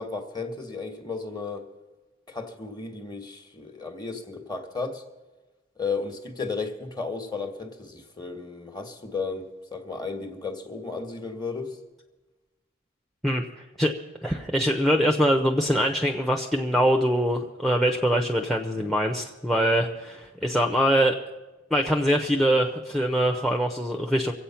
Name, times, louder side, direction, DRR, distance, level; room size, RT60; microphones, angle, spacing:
voice 1, 0.0-1.7 2.3-5.0 5.8-11.8, left 4 dB, 20° left, 1.4 m, -34 dB
voice 2, 13.2-13.9 14.2-21.2 21.7-24.3, equal, ahead, 0.7 m, -23 dB
24.0 x 8.2 x 5.8 m
head